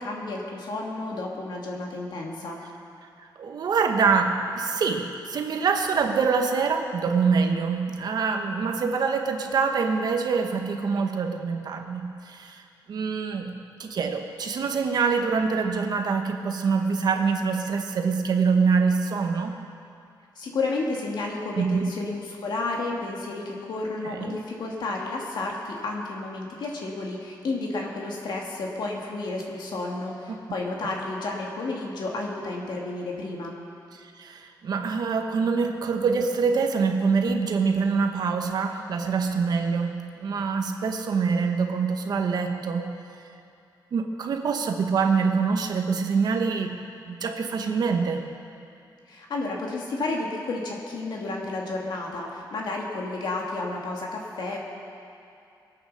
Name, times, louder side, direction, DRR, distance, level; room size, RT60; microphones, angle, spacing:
voice 1, 0.0-2.6 20.4-33.5 49.1-54.6, left 2 dB, 65° left, -1 dB, 2.0 m, -31 dB
voice 2, 3.4-12.6 12.9-19.5 21.6-21.9 24.0-24.4 30.3-30.4 34.0-42.9 43.9-46.8 47.1-48.2, right 5 dB, 60° right, 4 dB, 1.0 m, -25 dB
22.5 x 8.9 x 6.4 m, 2.5 s
wide cardioid pair, 165°, 8 cm